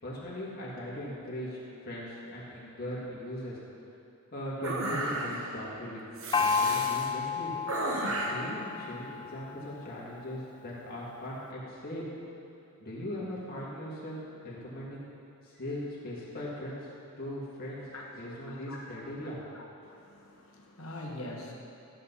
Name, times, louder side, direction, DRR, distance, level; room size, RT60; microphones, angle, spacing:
voice 1, 0.0-3.6 4.3-6.0 6.3-7.5 8.3-12.0 12.8-15.1 15.4-16.9 17.2-17.8 18.1-19.4, equal, 40° left, -6 dB, 2.4 m, -39 dB
sound 1, 4.6-5.6 6.2-7.1 7.7-8.5, right 2 dB, 65° right, 1.1 m, -33 dB
Gong, 6.3-9.8, left 6 dB, 20° left, 0.3 m, -31 dB
voice 2, 18.4-18.8 19.8-21.5, left 1 dB, 65° left, -2 dB, 1.5 m, -43 dB
14.0 x 7.8 x 4.2 m, 2.7 s
head